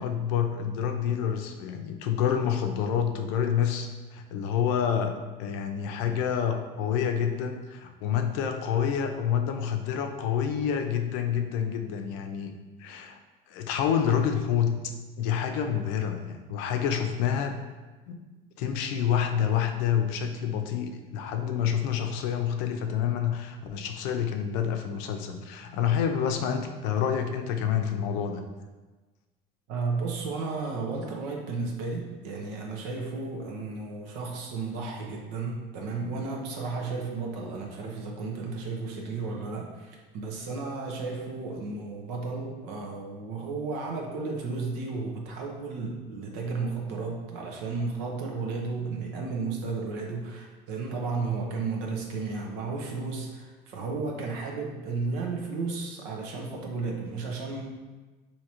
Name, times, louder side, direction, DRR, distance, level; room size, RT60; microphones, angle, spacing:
voice 1, 0.0-12.5 12.8-13.2 13.5-17.6 18.1-18.2 18.6-28.4, left 8 dB, 85° left, 5 dB, 0.5 m, -28 dB
voice 2, 29.7-57.6, right 4 dB, 90° right, 0 dB, 0.8 m, -33 dB
4.8 x 2.8 x 2.9 m, 1.2 s
cardioid pair, 120°, 18 cm